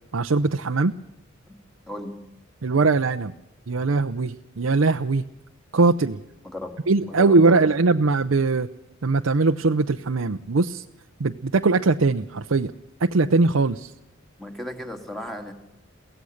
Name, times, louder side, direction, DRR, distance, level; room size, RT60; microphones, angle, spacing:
voice 1, 0.1-0.9 2.6-3.3 3.7-5.2 5.7-6.2 6.9-8.7 9.0-10.8 11.2-12.7 13.0-13.9, right 3 dB, 85° right, 6 dB, 0.7 m, -21 dB
voice 2, 1.9-2.2 6.4-6.8 7.1-7.7 14.4-15.5, left 1 dB, ahead, 6 dB, 2.3 m, -35 dB
23.0 x 17.0 x 6.5 m, 0.87 s
head